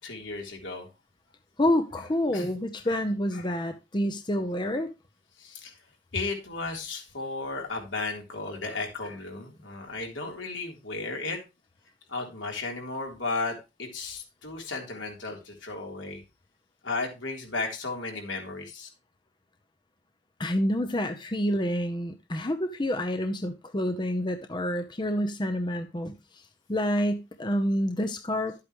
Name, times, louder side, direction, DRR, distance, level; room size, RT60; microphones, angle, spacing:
voice 1, 0.0-0.9 2.3-2.5 2.8-3.0 3.3-3.5 5.4-5.8 6.1-11.4 12.1-16.2 16.8-18.9, left 3 dB, 75° left, 3.5 m, -34 dB
voice 2, 1.6-4.9 20.4-26.4 26.7-28.6, equal, 25° left, 0.7 m, -28 dB
12.0 x 8.5 x 3.1 m
head